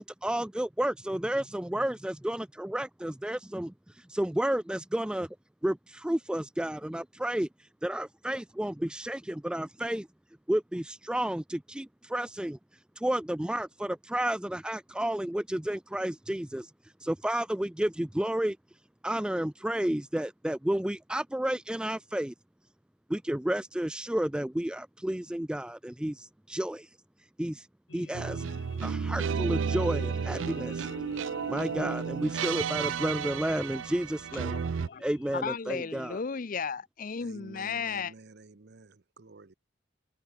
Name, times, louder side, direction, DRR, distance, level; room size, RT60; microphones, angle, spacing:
voice 1, 0.0-3.7 4.1-5.4 5.6-7.5 7.8-10.1 10.5-12.6 13.0-16.7 17.0-18.6 19.0-22.3 23.1-26.9 27.4-27.6 27.9-28.4 28.8-30.9 31.5-34.6 35.0-36.2, right 1 dB, 5° right, 0.3 m, -31 dB
sound 1, 27.9-35.4, left 3 dB, 70° left, 1.3 m, -50 dB
sound 2, 28.1-34.9, right 6 dB, 80° right, 0.4 m, -32 dB
voice 2, 35.3-38.1, left 6 dB, 45° left, 0.6 m, -34 dB
voice 3, 37.2-39.5, right 3 dB, 60° right, 0.9 m, -51 dB
head